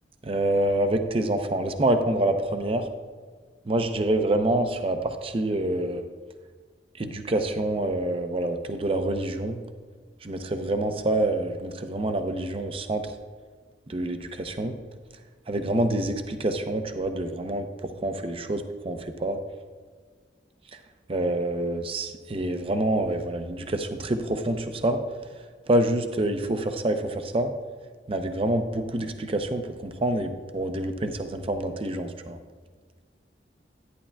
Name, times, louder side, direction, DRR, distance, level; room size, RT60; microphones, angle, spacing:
voice 1, 0.2-2.8 3.7-6.0 7.0-9.6 10.2-13.1 13.9-14.8 15.5-19.4 21.1-25.0 25.7-27.5 28.1-32.4, right 1 dB, 35° right, 7 dB, 0.6 m, -27 dB
11.0 x 9.8 x 2.3 m, 1.6 s
head